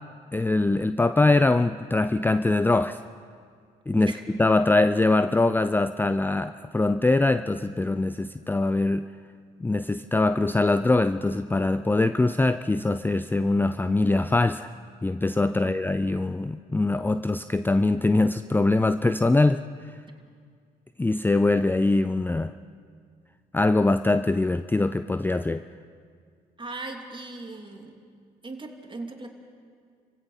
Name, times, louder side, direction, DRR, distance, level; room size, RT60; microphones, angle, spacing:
voice 1, 0.3-3.0 3.9-4.1 4.4-9.1 9.6-14.7 15.0-19.6 21.0-22.5 23.5-25.6, left 2 dB, 10° left, 12 dB, 0.5 m, -23 dB
voice 2, 3.9-4.2 15.6-15.7 26.6-28.0 28.4-29.3, right 3 dB, 25° right, 3 dB, 2.9 m, -38 dB
29.5 x 16.0 x 5.8 m, 2.1 s
hypercardioid pair, 55°, 19 cm